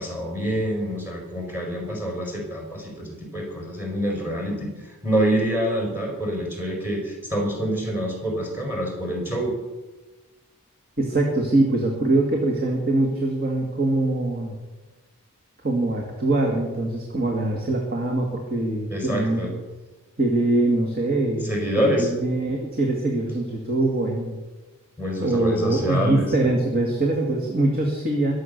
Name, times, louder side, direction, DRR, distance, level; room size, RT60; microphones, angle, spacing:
voice 1, 0.0-9.5 18.9-19.5 21.4-22.1 25.0-26.3, equal, 10° right, 0 dB, 4.3 m, -26 dB
voice 2, 11.0-14.5 15.6-19.5 20.2-21.5 21.8-24.4 25.2-28.3, right 2 dB, 45° right, 1 dB, 2.1 m, -23 dB
22.5 x 7.7 x 6.7 m, 1.2 s
head